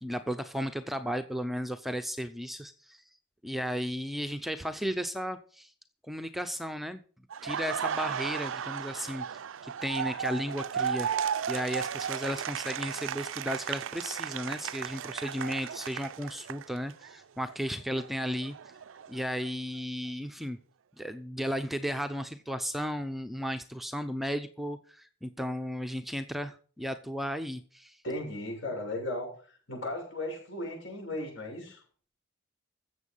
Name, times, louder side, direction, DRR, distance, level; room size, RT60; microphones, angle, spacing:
voice 1, 0.0-3.0 3.4-5.7 6.0-7.0 7.4-11.1 11.5-18.5 19.1-20.6 21.0-28.0, equal, ahead, 8 dB, 0.6 m, -34 dB
Laughter, 7.3-17.1 17.5-19.5, right 8 dB, 80° right, 0.4 m, -35 dB
voice 2, 28.0-29.3 29.7-31.8, left 1 dB, 70° left, -1 dB, 7.0 m, -36 dB
15.0 x 7.4 x 5.5 m, 0.41 s
head